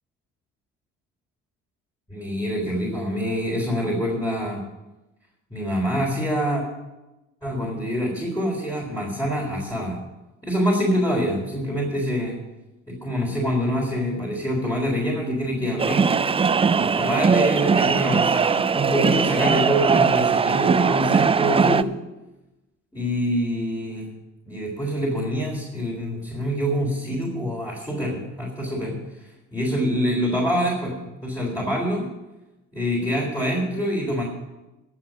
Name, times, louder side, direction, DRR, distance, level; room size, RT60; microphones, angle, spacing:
voice 1, 2.1-4.6 5.5-6.6 7.4-10.0 10.4-12.4 12.9-16.1 16.8-21.9 22.9-24.1 24.5-32.1 32.7-34.2, equal, 10° left, -4 dB, 4.0 m, -25 dB
sound 1, 15.8-21.8, right 5 dB, 20° right, 0.4 m, -20 dB
12.0 x 7.3 x 9.2 m, 1.0 s
cardioid pair, 90°, 30 cm